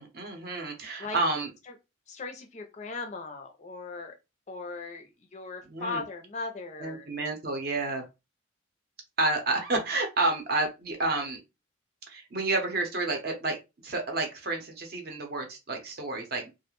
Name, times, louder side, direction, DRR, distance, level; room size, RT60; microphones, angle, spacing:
voice 1, 0.0-1.5 5.7-6.0 6.8-8.0 9.2-11.4 12.1-13.6 13.8-16.5, right 2 dB, 50° right, 3 dB, 0.7 m, -30 dB
voice 2, 2.1-4.2 4.5-7.1, left 4 dB, 35° left, 6 dB, 0.4 m, -38 dB
2.3 x 2.1 x 3.0 m, 0.25 s
head